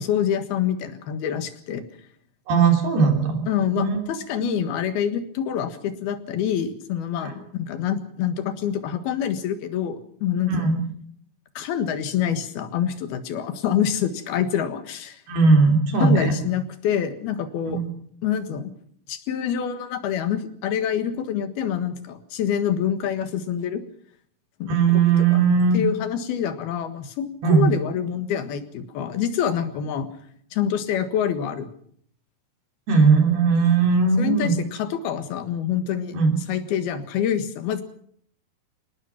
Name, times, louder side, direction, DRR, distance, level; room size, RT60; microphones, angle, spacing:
voice 1, 0.0-1.8 3.5-10.6 11.6-15.2 16.0-17.8 18.2-18.7 19.1-23.8 24.6-24.8 25.3-25.4 25.7-30.1 30.5-31.7 34.2-36.2 36.5-37.8, left 9 dB, 80° left, 9 dB, 3.6 m, -26 dB
voice 2, 2.5-3.5 3.8-4.0 4.4-4.6 7.2-7.3 10.5-10.8 15.3-16.3 17.7-17.9 24.7-25.8 27.4-27.7 32.9-34.5 36.1-36.4, right 4 dB, 85° right, 3 dB, 5.1 m, -18 dB
25.0 x 19.0 x 5.9 m, 0.63 s
omnidirectional pair, 4.4 m